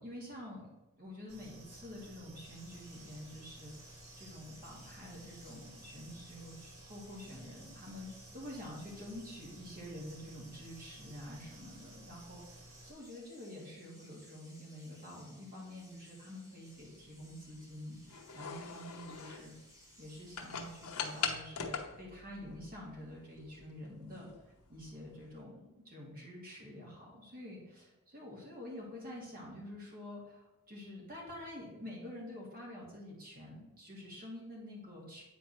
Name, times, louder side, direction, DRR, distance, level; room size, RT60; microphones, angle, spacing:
voice 1, 0.0-12.4 12.8-19.5 20.0-24.3 24.7-35.2, left 1 dB, 40° right, -3 dB, 2.6 m, -48 dB
sound 1, 1.3-12.9, right 2 dB, 70° right, 1.4 m, -55 dB
sound 2, 2.4-21.4, equal, 15° right, 1.5 m, -61 dB
sound 3, 16.8-25.4, left 6 dB, 75° left, 0.8 m, -43 dB
8.7 x 4.4 x 4.3 m, 1.0 s
head